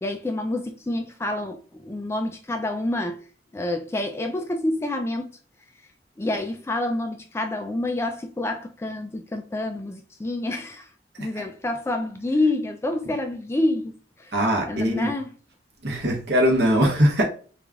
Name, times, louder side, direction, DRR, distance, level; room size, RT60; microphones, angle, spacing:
voice 1, 0.0-3.2 3.5-5.3 6.2-10.9 11.2-14.3 14.7-15.3, left 2 dB, 15° left, 0.3 m, -28 dB
voice 2, 14.3-15.1 15.8-17.2, equal, 60° right, 1.1 m, -21 dB
3.1 x 2.4 x 3.5 m
head